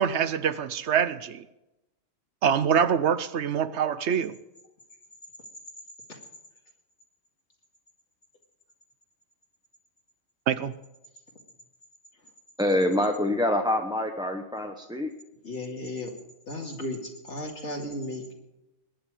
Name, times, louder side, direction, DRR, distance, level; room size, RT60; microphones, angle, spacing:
voice 1, 0.0-1.5 2.4-4.3 10.5-10.7, right 8 dB, 70° right, 1.0 m, -25 dB
voice 2, 12.6-15.1, left 1 dB, 5° right, 0.9 m, -26 dB
voice 3, 15.4-16.1 16.5-18.3, left 1 dB, 70° left, 2.6 m, -35 dB
21.5 x 10.0 x 5.0 m
omnidirectional pair, 1.2 m